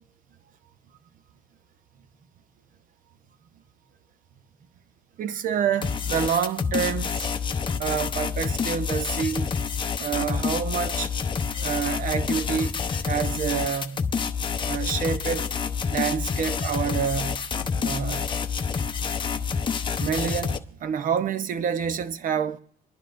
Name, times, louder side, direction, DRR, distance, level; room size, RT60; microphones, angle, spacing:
voice 1, 5.2-7.3 7.8-9.5 10.0-11.2 11.6-14.1 14.6-15.5 15.9-17.4 17.8-18.3 19.2-19.6 20.0-22.6, right 7 dB, 55° right, 0.8 m, -28 dB
sound 1, 5.8-20.6, left 6 dB, 30° left, 0.7 m, -28 dB
27.0 x 10.5 x 2.5 m
cardioid pair, 110°, 17 cm